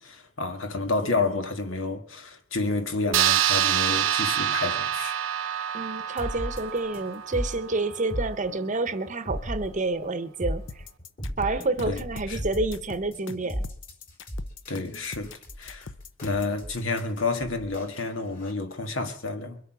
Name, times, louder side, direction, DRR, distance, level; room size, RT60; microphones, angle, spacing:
voice 1, 0.0-5.2 11.9-12.4 14.7-15.3 15.6-15.9 16.2-19.6, left 3 dB, 85° left, 1.7 m, -30 dB
sound 1, 3.1-8.0, right 11 dB, 75° right, 0.7 m, -26 dB
voice 2, 5.7-10.6 11.4-13.6, right 3 dB, 40° right, 0.9 m, -29 dB
sound 2, 6.2-18.5, equal, 50° left, 4.5 m, -36 dB
sound 3, 10.7-16.6, left 4 dB, 70° left, 0.8 m, -42 dB
22.5 x 8.3 x 6.1 m
head